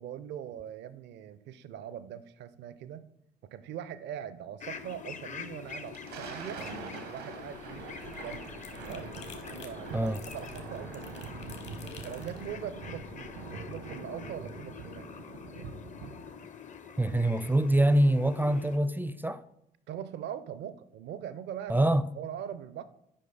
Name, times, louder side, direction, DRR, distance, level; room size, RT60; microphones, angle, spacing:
voice 1, 0.0-3.1 3.5-6.6 7.1-7.8 8.2-8.5 8.8-11.3 12.0-15.1 19.9-22.8, right 9 dB, 60° right, 0.5 m, -41 dB
sound 1, 4.6-18.8, left 7 dB, 40° left, 0.6 m, -46 dB
Thunder, 5.7-16.5, right 4 dB, 80° right, 1.0 m, -44 dB
sound 2, 7.4-13.5, left 5 dB, 60° left, 1.3 m, -51 dB
voice 2, 17.0-19.4 21.7-22.0, right 1 dB, 10° right, 0.4 m, -25 dB
7.6 x 5.2 x 3.9 m
hypercardioid pair, 45°, 20 cm